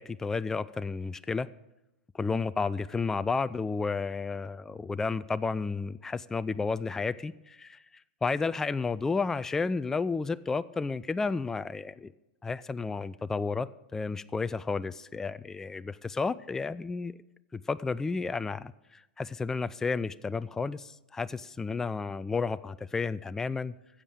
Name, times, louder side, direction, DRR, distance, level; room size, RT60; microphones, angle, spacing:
voice 1, 0.0-1.5 2.1-7.8 8.2-12.1 12.4-17.1 17.5-23.7, left 4 dB, 10° left, 15 dB, 0.3 m, -32 dB
15.0 x 7.3 x 6.5 m, 0.96 s
figure-of-eight pair, 100°, 5 cm